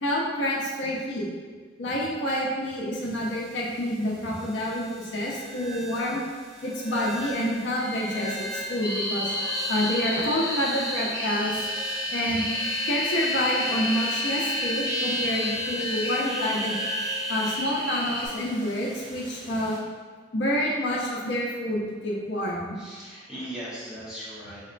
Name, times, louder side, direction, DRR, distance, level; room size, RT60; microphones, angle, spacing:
voice 1, 0.0-1.3 1.8-6.2 6.6-9.3 9.7-11.7 12.1-12.4 12.9-16.8 17.3-19.8 20.3-22.8, equal, 65° left, -3 dB, 0.6 m, -28 dB
sound 1, 2.9-19.8, right 1 dB, 85° right, 1.0 m, -40 dB
sound 2, 7.8-18.3, left 1 dB, 60° right, 1.2 m, -30 dB
voice 2, 22.8-24.7, equal, 5° right, -11 dB, 1.0 m, -38 dB
4.1 x 2.9 x 2.5 m, 1.5 s
head